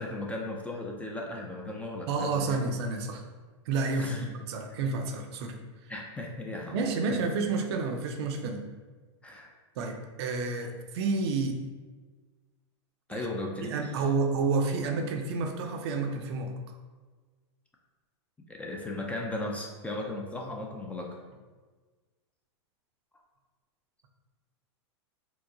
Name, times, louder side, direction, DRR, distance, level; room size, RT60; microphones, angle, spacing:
voice 1, 0.0-2.7 3.9-4.2 5.9-6.7 7.1-7.2 9.2-9.5 13.1-13.8 18.5-21.2, left 2 dB, 10° left, -1 dB, 0.3 m, -36 dB
voice 2, 2.1-3.2 3.7-5.9 6.7-8.6 9.8-11.6 13.1-13.3 13.6-16.6, right 4 dB, 60° right, 4 dB, 0.5 m, -30 dB
4.5 x 2.0 x 2.6 m, 1.4 s
hypercardioid pair, 125°, 15 cm